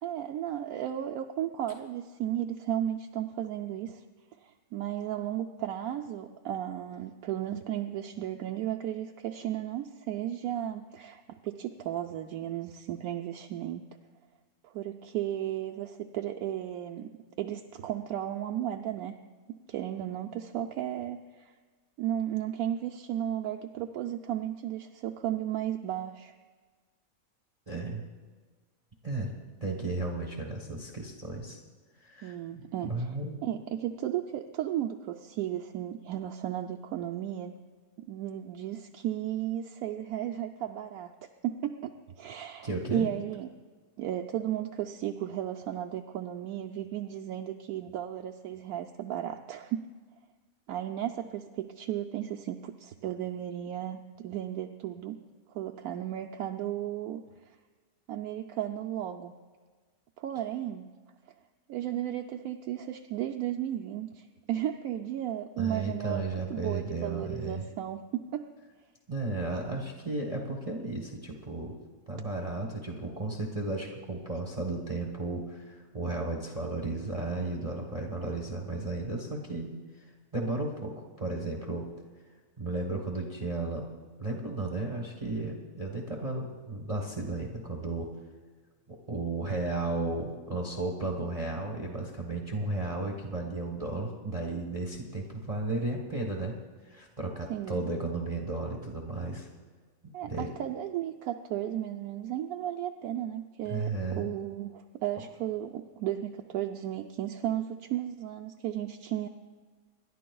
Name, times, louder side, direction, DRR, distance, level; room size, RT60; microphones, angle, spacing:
voice 1, 0.0-4.0 4.4-13.8 14.6-17.1 17.4-19.2 19.5-21.5 22.0-26.3 32.2-33.2 33.4-37.5 38.0-41.1 41.4-43.5 44.0-49.8 50.7-55.2 55.5-57.2 58.1-59.3 60.2-60.9 61.7-66.2 66.5-68.5 74.2-74.3 97.5-97.9 100.1-109.3, right 11 dB, 85° right, 3 dB, 1.1 m, -34 dB
voice 2, 27.7-28.0 29.0-29.3 29.6-31.6 32.0-32.4 32.8-33.4 42.6-43.1 65.6-67.6 69.1-71.8 72.1-79.7 79.9-80.1 80.3-81.9 82.6-83.9 84.2-88.1 88.9-96.5 96.8-99.5 100.2-100.5 103.7-104.3 105.2-105.3, right 2 dB, 25° right, 0 dB, 1.1 m, -34 dB
27.0 x 11.5 x 2.3 m, 1.4 s
omnidirectional pair, 1.5 m